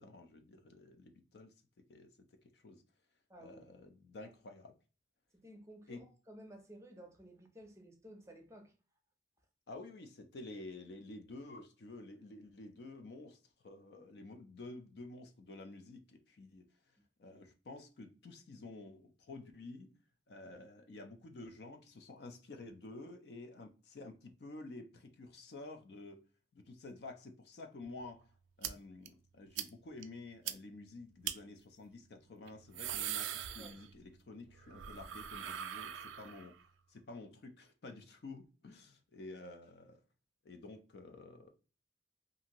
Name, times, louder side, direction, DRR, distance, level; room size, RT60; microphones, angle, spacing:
voice 1, 0.0-2.8 3.4-4.8 5.9-6.1 9.7-16.7 17.2-19.9 20.3-28.3 28.6-36.6 36.9-40.0 40.4-41.5, left 2 dB, 60° left, 0.4 m, -51 dB
voice 2, 3.3-3.6 4.2-4.3 5.3-8.7 33.6-33.8, equal, 15° right, 0.5 m, -54 dB
sound 1, 28.6-28.7 29.1-29.2 29.6-29.7 30.0-30.1 30.5-30.6 31.2-31.4 32.5-34.1 34.4-36.6, right 10 dB, 85° right, 0.3 m, -41 dB
2.7 x 2.5 x 2.8 m
head